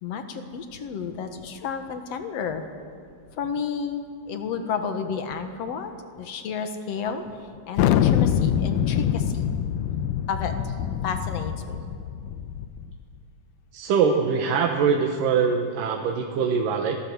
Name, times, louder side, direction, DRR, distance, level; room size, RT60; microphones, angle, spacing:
voice 1, 0.0-2.7 3.3-5.9 6.2-7.2 7.7-9.5 10.3-10.6 11.0-11.8, left 6 dB, 55° left, 7 dB, 2.4 m, -31 dB
Thunder, 7.8-12.9, left 9 dB, 85° left, 2.4 m, -24 dB
voice 2, 13.7-17.0, right 6 dB, 85° right, 3 dB, 2.8 m, -23 dB
26.0 x 18.5 x 8.0 m, 2.3 s
omnidirectional pair, 3.7 m